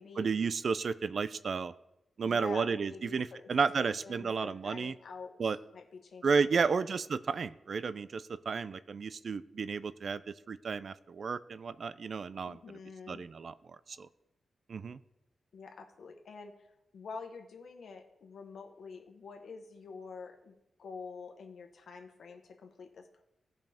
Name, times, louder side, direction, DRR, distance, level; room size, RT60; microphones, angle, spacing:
voice 1, 0.2-1.7 2.2-4.9 5.4-5.6 6.2-10.2 10.5-12.6 13.1-14.1 14.7-15.0, right 5 dB, 45° right, 15 dB, 0.3 m, -32 dB
voice 2, 2.2-3.5 4.0-6.8 12.5-13.2 15.5-23.2, left 4 dB, 65° left, 4 dB, 1.2 m, -47 dB
16.0 x 5.3 x 3.5 m, 0.87 s
wide cardioid pair, 180°, 0 cm